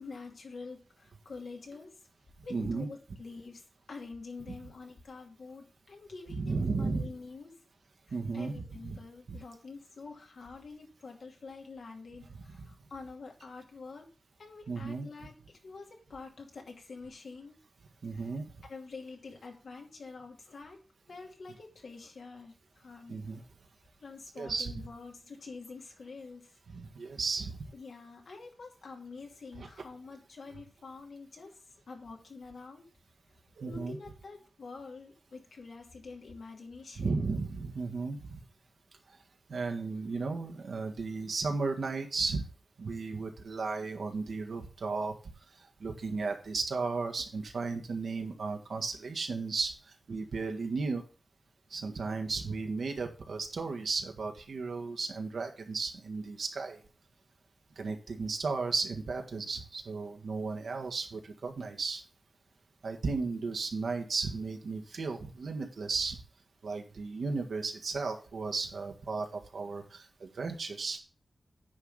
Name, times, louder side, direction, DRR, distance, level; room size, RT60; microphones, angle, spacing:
voice 1, 0.0-2.0 2.4-7.6 8.1-14.1 14.4-17.6 18.1-18.3 18.7-23.2 24.0-26.5 27.7-32.9 33.7-37.3, left 4 dB, 85° left, 1 dB, 2.6 m, -47 dB
voice 2, 2.5-2.9 6.3-7.1 8.1-8.5 8.8-9.0 9.3-9.4 12.3-12.7 14.7-15.1 18.0-18.4 23.1-23.4 24.4-24.7 26.7-27.7 29.6-29.7 33.6-34.0 37.0-38.4 39.5-42.5 42.8-45.1 45.8-51.0 51.7-56.8 57.8-62.0 62.8-66.2 66.6-71.0, right 4 dB, 90° right, 4 dB, 1.7 m, -34 dB
9.7 x 4.0 x 7.3 m, 0.36 s
wide cardioid pair, 95°, 0 cm